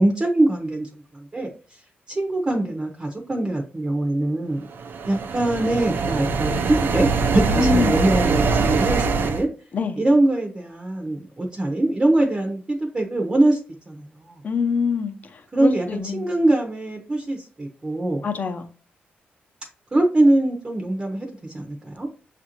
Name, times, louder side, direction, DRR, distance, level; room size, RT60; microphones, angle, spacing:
voice 1, 0.0-1.8 2.1-4.7 5.1-9.5 10.0-13.6 13.9-14.4 15.5-18.2 19.9-22.1, right 1 dB, 25° right, 0.7 m, -23 dB
sound 1, 4.7-9.4, right 4 dB, 60° right, 0.5 m, -22 dB
voice 2, 7.5-8.0 9.7-10.0 14.4-16.2 18.2-18.7, left 5 dB, 45° left, 0.7 m, -25 dB
6.8 x 2.5 x 2.9 m
cardioid pair, 120°, 4 cm